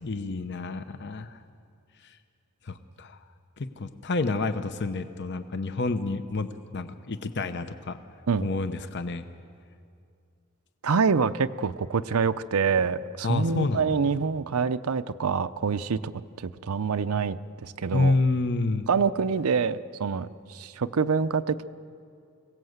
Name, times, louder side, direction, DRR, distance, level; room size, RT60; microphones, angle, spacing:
voice 1, 0.0-1.4 2.0-2.2 2.7-3.2 3.6-8.0 8.4-9.2 13.2-14.0 17.9-18.9, left 3 dB, 55° left, 10 dB, 0.8 m, -29 dB
voice 2, 10.8-16.1 16.4-17.4 17.8-18.1 18.9-21.6, right 5 dB, 75° right, 11 dB, 0.6 m, -26 dB
25.5 x 17.5 x 7.9 m, 2.4 s
head